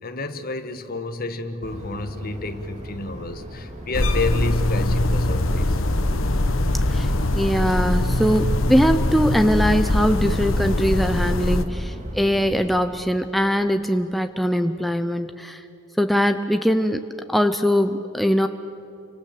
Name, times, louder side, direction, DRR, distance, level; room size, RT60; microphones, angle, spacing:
voice 1, 0.0-5.8, left 3 dB, 45° left, 9 dB, 1.5 m, -30 dB
sound 1, 1.6-12.8, equal, 35° right, 2.8 m, -39 dB
sound 2, 3.9-11.6, left 1 dB, 80° left, 1.2 m, -22 dB
voice 2, 6.9-15.6 16.0-18.5, equal, ahead, 7 dB, 0.6 m, -21 dB
30.0 x 25.0 x 7.7 m, 3.0 s
head